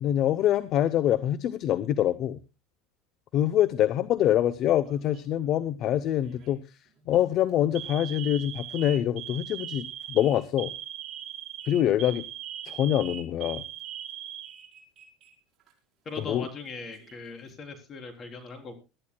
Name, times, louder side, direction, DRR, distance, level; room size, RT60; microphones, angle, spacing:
voice 1, 0.0-2.4 3.3-6.8 7.1-10.7 11.7-12.3 12.6-13.6 16.2-16.5, left 11 dB, 45° left, 15 dB, 0.8 m, -25 dB
Alarm, 4.8-5.4 6.2-6.5 7.0-7.2 7.7-15.3 15.6-15.7 16.6-17.3, right 12 dB, 40° right, 5.3 m, -40 dB
voice 2, 16.1-18.7, left 4 dB, 30° left, 5 dB, 3.8 m, -40 dB
23.0 x 13.5 x 2.2 m, 0.28 s
supercardioid pair, 125°, 0 cm